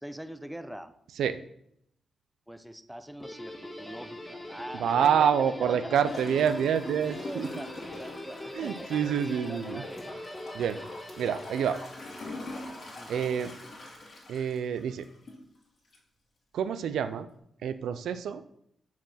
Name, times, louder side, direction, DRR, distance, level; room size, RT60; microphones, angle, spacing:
voice 1, 0.0-0.9 2.5-6.1 7.2-8.9 9.5-10.1 10.7-11.0 13.0-13.6, equal, 5° right, 10 dB, 0.6 m, -43 dB
Guitar, 3.2-12.5, left 1 dB, 25° left, 1.6 m, -43 dB
voice 2, 4.8-7.5 8.5-9.8 10.5-10.8 11.2-11.8 13.1-13.5 14.3-15.1 16.5-17.3 17.6-18.4, right 8 dB, 85° right, 11 dB, 0.4 m, -27 dB
Gurgling / Toilet flush, 6.0-15.4 15.9-16.0, left 2 dB, 55° left, 2.6 m, -43 dB
6.0 x 4.5 x 5.6 m, 0.73 s
cardioid pair, 80°, 0 cm